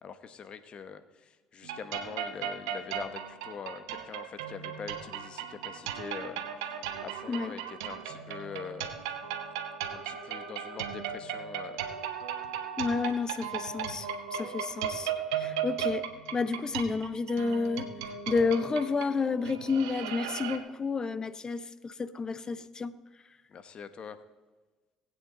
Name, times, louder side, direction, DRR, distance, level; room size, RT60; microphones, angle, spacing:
voice 1, 0.0-9.1 9.9-11.9 23.5-24.2, left 6 dB, 50° left, 11 dB, 1.2 m, -44 dB
sound 1, 1.6-20.6, right 8 dB, 85° right, 1.1 m, -36 dB
voice 2, 12.8-16.1 16.3-17.9 18.3-22.9, left 4 dB, 30° left, 15 dB, 0.8 m, -30 dB
19.5 x 8.7 x 4.0 m, 1.2 s
hypercardioid pair, 70°, 2 cm